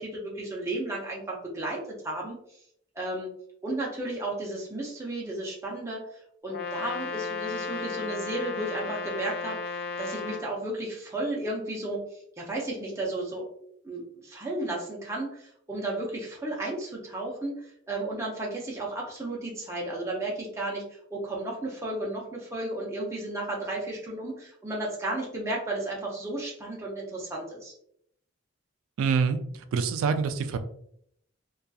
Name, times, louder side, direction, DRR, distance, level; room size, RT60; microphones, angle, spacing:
voice 1, 0.0-2.6 3.0-3.3 3.6-13.5 13.8-27.7, right 1 dB, 15° right, -3 dB, 0.4 m, -33 dB
Brass instrument, 6.5-10.5, left 4 dB, 50° left, 0.3 m, -34 dB
voice 2, 29.0-30.6, right 5 dB, 85° right, 10 dB, 0.3 m, -26 dB
2.6 x 2.3 x 2.3 m, 0.70 s
head